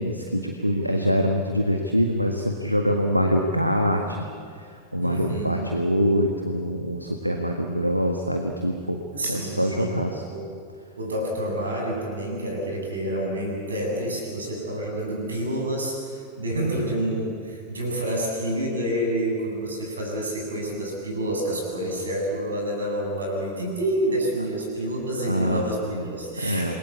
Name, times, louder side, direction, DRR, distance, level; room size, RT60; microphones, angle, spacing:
voice 1, 0.0-4.3 4.6-9.0 9.3-10.2 25.2-25.6 25.9-26.1 26.4-26.8, equal, 90° right, 3 dB, 1.7 m, -24 dB
voice 2, 5.0-5.7 9.1-10.5 11.0-26.8, right 1 dB, 75° right, 0 dB, 7.5 m, -28 dB
28.0 x 21.5 x 8.5 m, 2.3 s
figure-of-eight pair, 90°, 0 cm